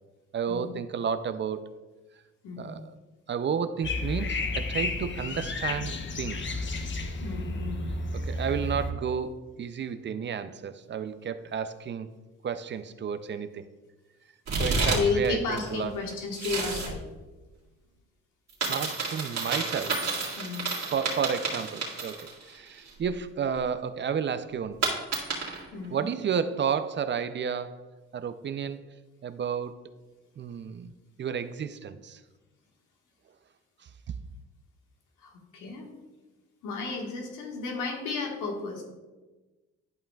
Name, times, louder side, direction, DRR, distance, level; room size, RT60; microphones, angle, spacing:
voice 1, 0.3-1.7 2.6-2.9 3.3-6.6 8.1-12.1 12.4-13.6 14.6-15.9 18.7-20.1 20.9-24.9 25.9-27.9 28.1-28.8 29.2-29.8 30.4-30.9 31.2-32.2, right 7 dB, 40° right, 11 dB, 0.4 m, -32 dB
voice 2, 2.4-2.7 7.2-8.0 14.5-17.0 20.4-20.7 25.7-26.1 35.2-35.9 36.6-38.8, left 4 dB, 90° left, 0 dB, 1.5 m, -33 dB
sound 1, 3.8-8.9, left 2 dB, 40° left, 0.8 m, -32 dB
sound 2, 14.5-15.3 15.5-16.9 18.5-22.5 22.9-23.0 24.8-25.6, right 3 dB, 60° right, 2.1 m, -30 dB
11.0 x 5.4 x 2.3 m, 1.2 s
cardioid pair, 90°, 30 cm